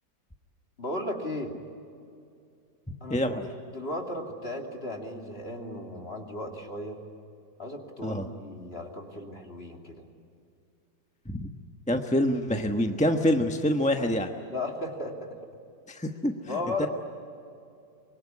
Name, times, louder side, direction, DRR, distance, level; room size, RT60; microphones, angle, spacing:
voice 1, 0.8-1.6 3.0-7.0 7.6-10.0 14.5-15.3 16.5-16.9, left 2 dB, 30° left, 2 dB, 3.1 m, -35 dB
voice 2, 3.1-3.5 8.0-8.3 11.3-11.5 11.9-14.3 15.9-16.9, equal, 5° left, 4 dB, 0.9 m, -26 dB
25.0 x 23.0 x 9.8 m, 2.5 s
omnidirectional pair, 2.0 m